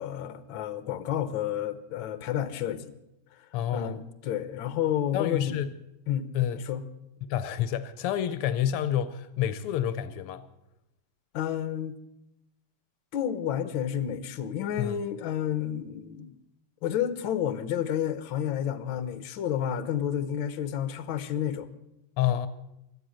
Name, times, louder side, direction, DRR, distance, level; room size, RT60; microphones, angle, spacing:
voice 1, 0.0-2.9 3.7-5.6 6.1-6.8 11.3-12.0 13.1-16.3 16.8-21.7, left 10 dB, 70° left, 1.6 m, -30 dB
voice 2, 3.5-4.0 5.1-5.7 6.3-6.6 7.2-10.4 14.8-15.0 22.2-22.5, left 10 dB, 85° left, 1.7 m, -28 dB
16.5 x 12.0 x 6.3 m
omnidirectional pair, 2.4 m